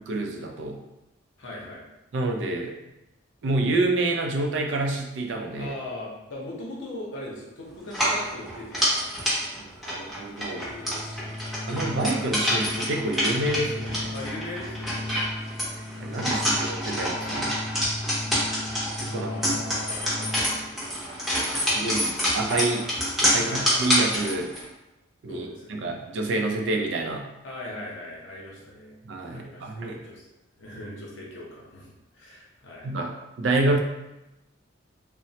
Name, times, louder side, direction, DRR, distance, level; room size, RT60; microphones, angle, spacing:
voice 1, 0.1-0.8 2.1-2.7 3.4-5.7 10.0-10.6 11.7-14.2 15.8-17.5 19.0-19.6 21.5-22.9 23.2-24.5 25.2-27.2 29.1-30.0 32.8-33.8, right 2 dB, 65° right, 2 dB, 0.4 m, -28 dB
voice 2, 1.4-1.8 5.6-9.0 10.4-11.3 14.1-15.1 19.1-20.8 23.4-23.9 25.3-25.9 27.4-29.0 29.3-30.2 30.6-32.9, left 1 dB, 70° left, -4 dB, 0.7 m, -40 dB
sound 1, 7.9-24.6, equal, ahead, 0.6 m, -27 dB
Organ, 10.4-20.8, left 2 dB, 40° right, 0.9 m, -37 dB
2.9 x 2.0 x 2.8 m, 0.96 s
head